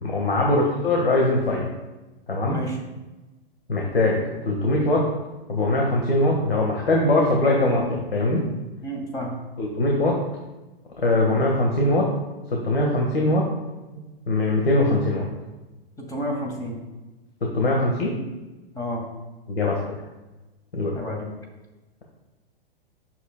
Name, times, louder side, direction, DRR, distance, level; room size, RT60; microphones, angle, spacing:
voice 1, 0.0-1.7 2.3-2.6 3.7-5.0 5.5-8.4 9.6-10.2 11.0-12.1 12.5-13.5 14.3-15.2 17.5-18.2 19.5-19.8 20.7-20.9, left 2 dB, 75° left, -1 dB, 1.6 m, -21 dB
voice 2, 2.5-2.8 8.8-9.4 16.0-16.8 18.7-19.0 20.9-21.3, equal, 10° left, -1 dB, 2.1 m, -30 dB
11.0 x 6.8 x 2.3 m, 1.1 s
figure-of-eight pair, 110°, 30 cm